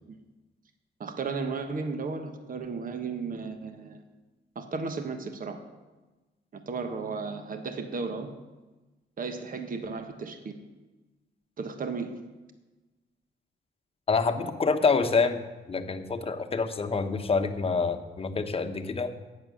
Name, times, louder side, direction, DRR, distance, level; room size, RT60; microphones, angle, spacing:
voice 1, 1.0-4.0 4.5-5.6 6.5-8.3 9.2-10.6 11.6-12.2, right 4 dB, 45° right, 7 dB, 1.2 m, -34 dB
voice 2, 14.1-19.1, left 4 dB, 30° left, 7 dB, 1.1 m, -27 dB
10.5 x 8.6 x 6.4 m, 1.2 s
cardioid pair, 90°, 20 cm